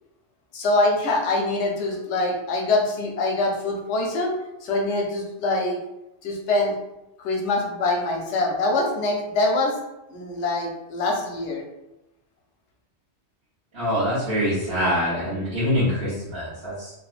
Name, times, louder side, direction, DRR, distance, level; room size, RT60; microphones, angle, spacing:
voice 1, 0.5-4.3 4.6-5.8 6.2-6.7 7.2-9.8 10.1-11.6, left 2 dB, 75° left, 1 dB, 0.9 m, -24 dB
voice 2, 13.7-16.9, equal, 60° right, -12 dB, 1.1 m, -24 dB
2.9 x 2.1 x 2.4 m, 0.90 s
omnidirectional pair, 1.2 m